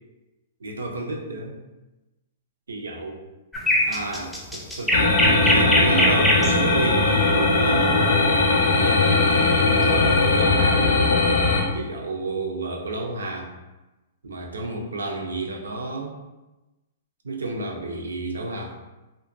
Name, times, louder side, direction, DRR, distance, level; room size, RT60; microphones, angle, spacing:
voice 1, 0.6-1.6 2.7-3.2 3.9-8.3 8.7-11.1 11.7-13.5 14.2-16.2 17.2-18.8, right 2 dB, 90° right, 2 dB, 0.5 m, -31 dB
sound 1, 3.5-6.5 8.6-8.8, equal, ahead, 0.4 m, -21 dB
sound 2, 4.9-11.6, left 3 dB, 75° left, 0.5 m, -19 dB
2.4 x 2.1 x 2.5 m, 1.1 s
hypercardioid pair, 125°, 0 cm